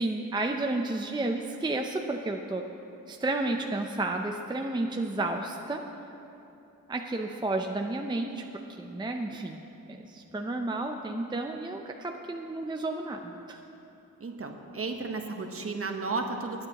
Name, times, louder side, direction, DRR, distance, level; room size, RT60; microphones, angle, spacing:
voice 1, 0.0-2.7 3.1-5.8 6.9-8.4 8.8-9.6 9.9-13.6, right 2 dB, 15° right, 3 dB, 0.6 m, -31 dB
voice 2, 14.2-16.7, right 3 dB, 40° right, 4 dB, 1.2 m, -33 dB
20.5 x 9.6 x 3.0 m, 3.0 s
cardioid pair, 80°, 34 cm